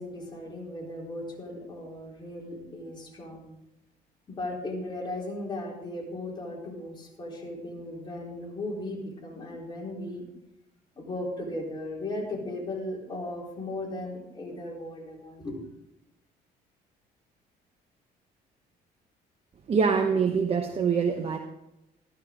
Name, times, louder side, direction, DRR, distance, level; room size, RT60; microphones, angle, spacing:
voice 1, 0.0-3.5 4.3-10.3 11.0-15.5, left 1 dB, 25° left, -2 dB, 3.8 m, -36 dB
voice 2, 19.7-21.4, right 6 dB, 35° right, 4 dB, 0.9 m, -24 dB
13.0 x 11.5 x 3.7 m, 0.89 s
cardioid pair, 110°, 17 cm